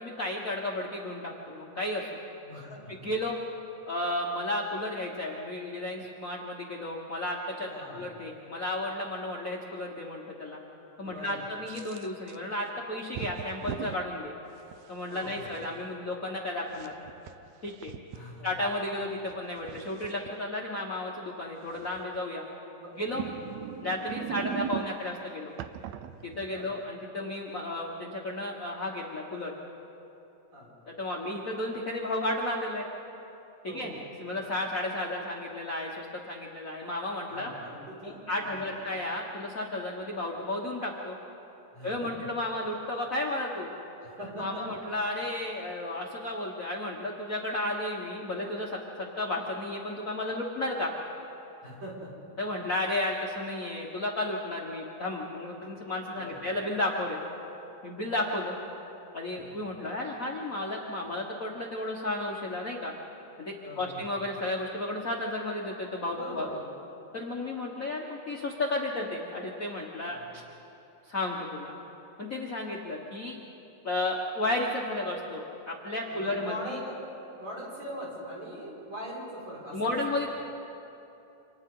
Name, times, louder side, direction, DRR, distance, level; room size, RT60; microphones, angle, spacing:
voice 1, 0.0-2.1 2.9-3.4 3.8-10.6 11.0-14.3 14.9-16.9 17.6-17.9 18.4-22.4 23.0-23.2 23.8-25.5 26.2-29.5 30.9-32.9 33.6-33.9 34.2-37.5 38.0-41.2 41.8-43.7 44.4-50.9 52.4-57.2 57.8-58.5 59.1-62.9 63.4-66.5 67.1-70.4 71.0-71.7 72.2-73.4 73.8-76.8 79.7-80.3, left 1 dB, 65° left, -3 dB, 0.8 m, -33 dB
voice 2, 2.4-2.9 7.7-8.0 11.0-11.4 15.1-15.5 18.1-18.5 22.7-22.9 24.2-24.8 26.5-26.7 30.5-30.7 33.7-34.0 37.3-38.8 41.7-42.1 44.0-44.6 51.6-52.1 56.1-56.4 59.3-59.5 63.6-64.1 66.1-66.7 70.0-70.3 76.1-77.0 77.4-80.0, equal, 35° right, -6 dB, 6.4 m, -42 dB
sound 1, 11.7-12.4 13.1-14.0 14.7-15.7 16.7-18.2 19.3-20.3 21.8-22.2 23.0-25.1 25.6-26.7, right 11 dB, 90° right, 1.5 m, -39 dB
29.0 x 26.5 x 3.9 m, 2.9 s
omnidirectional pair, 3.9 m